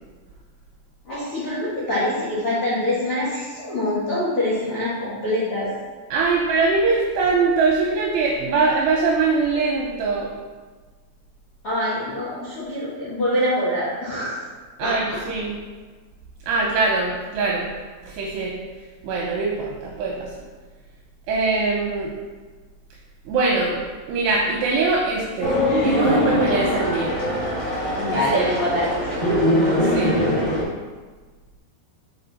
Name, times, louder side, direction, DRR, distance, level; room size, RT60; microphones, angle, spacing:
voice 1, 1.0-5.7 11.6-14.4 14.8-15.2 28.0-29.2, left 1 dB, 90° left, -8 dB, 1.2 m, -25 dB
voice 2, 6.1-10.3 14.8-15.6 16.5-17.7 18.1-18.6 19.0-20.3 21.3-22.1 23.3-23.8 24.1-27.2 28.1-28.5 29.8-30.2, right 4 dB, 80° right, -3 dB, 2.6 m, -22 dB
sound 1, 25.4-30.6, left 1 dB, 65° left, 1.2 m, -22 dB
6.4 x 5.3 x 4.0 m, 1.4 s
omnidirectional pair, 5.3 m